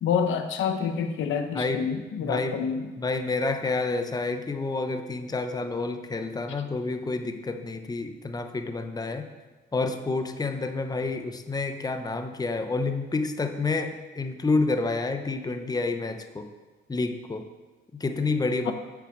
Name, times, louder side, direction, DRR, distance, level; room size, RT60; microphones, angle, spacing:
voice 1, 0.0-2.9 18.6-18.7, left 6 dB, 75° left, 7 dB, 1.1 m, -27 dB
voice 2, 1.5-1.9 2.2-2.7 3.0-9.3 9.7-16.5 16.9-17.5 18.0-18.7, left 3 dB, 20° left, 7 dB, 0.8 m, -29 dB
8.2 x 7.2 x 7.2 m, 1.2 s
cardioid pair, 90°, 20 cm